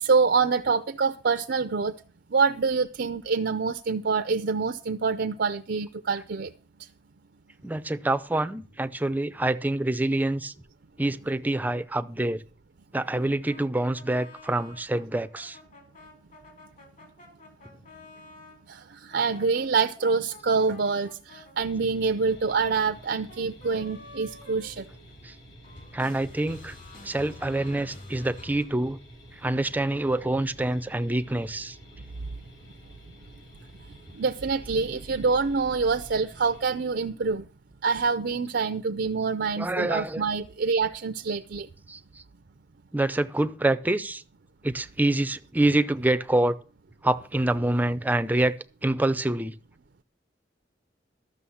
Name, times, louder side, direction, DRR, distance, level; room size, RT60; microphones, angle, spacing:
voice 1, 0.0-1.9 2.3-6.5 18.7-24.8 34.1-37.4 37.8-41.7, right 4 dB, 65° right, 0.5 m, -26 dB
voice 2, 7.6-10.5 11.0-12.4 12.9-15.6 25.2-25.3 25.9-26.7 27.0-29.0 29.4-31.8 39.6-40.2 41.9-42.0 42.9-44.2 44.6-46.6 47.0-48.5 48.8-49.5, right 1 dB, 10° right, 0.5 m, -26 dB
sound 1, 13.4-18.6 19.1-25.4 25.6-28.6, left 2 dB, 45° left, 3.7 m, -49 dB
sound 2, 21.6-36.7, equal, 80° left, 2.9 m, -50 dB
12.5 x 6.6 x 7.1 m
head